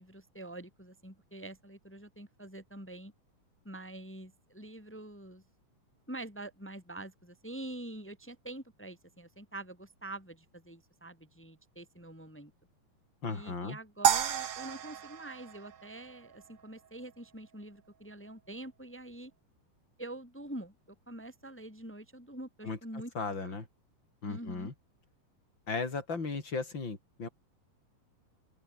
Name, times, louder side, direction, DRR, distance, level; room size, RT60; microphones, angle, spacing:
voice 1, 0.0-3.1 3.6-5.4 6.1-12.5 13.3-19.3 20.0-23.1 23.4-23.6 24.3-24.7, right 1 dB, 5° left, 2.1 m, -45 dB
voice 2, 13.2-13.8 22.6-22.8 23.1-23.7 24.2-24.7 25.7-27.3, left 4 dB, 30° left, 5.0 m, -36 dB
sound 1, 14.0-16.4, right 9 dB, 60° right, 3.3 m, -31 dB
open air
omnidirectional pair, 4.2 m